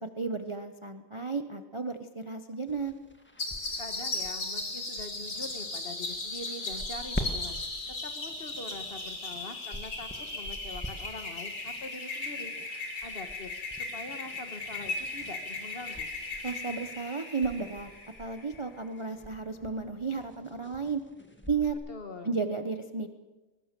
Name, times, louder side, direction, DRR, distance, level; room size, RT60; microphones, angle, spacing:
voice 1, 0.0-2.9 16.4-17.9 18.2-21.0 21.5-21.8 22.2-23.1, right 4 dB, 30° right, 7 dB, 0.5 m, -33 dB
sound 1, 2.7-21.7, equal, 5° left, 1.5 m, -45 dB
sound 2, 3.4-18.6, left 2 dB, 50° left, 3.7 m, -37 dB
voice 2, 3.8-7.7 8.0-12.5 13.0-16.1 21.9-22.4, left 2 dB, 35° left, 7 dB, 1.5 m, -44 dB
22.0 x 20.0 x 6.8 m, 1.2 s
omnidirectional pair, 2.1 m